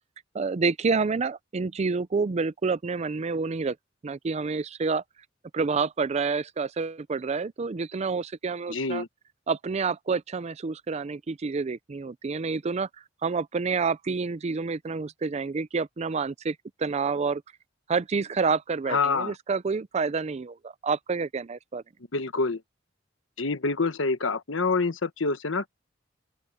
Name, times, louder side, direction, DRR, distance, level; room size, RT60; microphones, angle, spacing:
voice 1, 0.3-3.8 4.0-5.0 5.5-9.0 9.5-12.9 13.2-17.4 17.9-21.8, right 4 dB, 35° right, 0.4 m, -28 dB
voice 2, 8.7-9.1 18.9-19.3 22.1-22.6 23.4-25.7, left 4 dB, 85° left, 1.2 m, -26 dB
open air
head